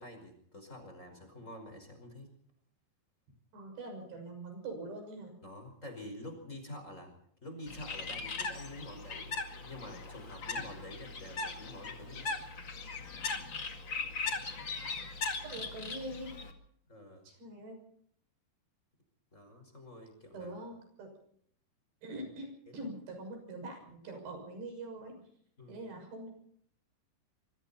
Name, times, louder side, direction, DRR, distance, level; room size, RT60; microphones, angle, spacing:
voice 1, 0.0-2.3 5.4-7.1 7.4-9.4 9.6-12.5 15.4-15.6 16.9-17.3 19.3-20.5 22.1-22.2 22.8-22.9 25.6-25.8, left 1 dB, 15° left, 5 dB, 5.2 m, -48 dB
voice 2, 3.5-5.3 15.4-16.3 17.3-17.8 20.3-21.1 22.0-25.2 25.7-26.3, right 2 dB, 85° right, 4 dB, 8.7 m, -43 dB
Bird, 7.7-16.5, left 4 dB, 35° left, 2.2 m, -39 dB
25.5 x 24.5 x 4.3 m, 0.65 s
omnidirectional pair, 4.8 m